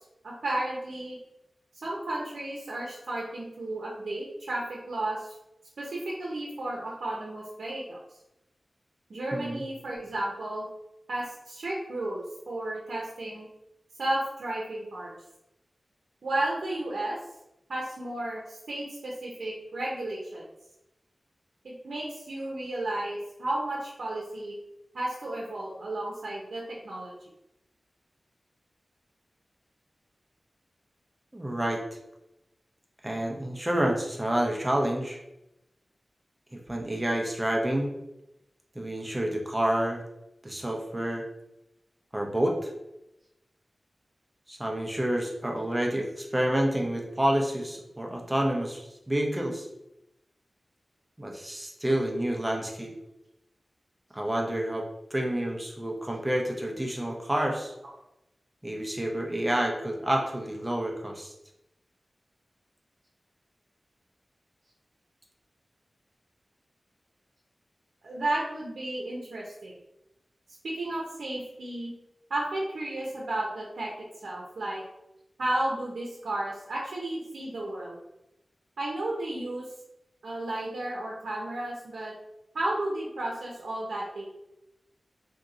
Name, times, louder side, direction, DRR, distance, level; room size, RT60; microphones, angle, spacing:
voice 1, 0.2-1.2 1.8-5.3 5.8-8.0 9.1-10.7 11.1-13.5 14.0-15.2 16.2-17.2 17.7-20.5 21.6-24.6 24.9-27.2 68.0-69.7 70.6-71.9 72.3-73.9 74.2-74.8 75.4-78.0 78.8-79.7 80.2-82.1 82.5-84.3, right 1 dB, 90° right, -3 dB, 0.6 m, -33 dB
voice 2, 9.3-9.6 31.3-31.8 33.0-35.2 36.5-37.9 38.7-40.0 40.4-41.2 42.1-42.7 44.5-49.7 51.2-52.9 54.1-54.8 55.1-57.7 58.6-61.3, right 1 dB, 15° right, 0 dB, 0.7 m, -29 dB
3.8 x 2.8 x 2.4 m, 0.88 s
wide cardioid pair, 75°, 0 cm